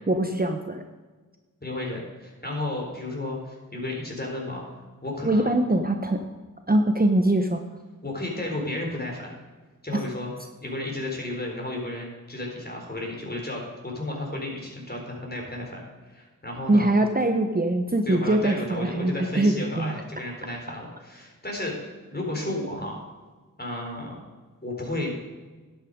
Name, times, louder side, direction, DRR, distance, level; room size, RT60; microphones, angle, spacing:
voice 1, 0.1-0.8 5.2-6.2 6.7-7.6 16.7-19.9, right 1 dB, 25° right, 5 dB, 0.9 m, -22 dB
voice 2, 1.6-4.6 5.0-5.5 8.0-9.3 9.8-10.3 10.6-15.8 16.1-16.9 18.1-23.0 23.6-24.2 24.6-25.2, left 2 dB, 30° left, 0 dB, 4.1 m, -33 dB
11.5 x 9.0 x 5.1 m, 1.3 s
cardioid pair, 45°, 34 cm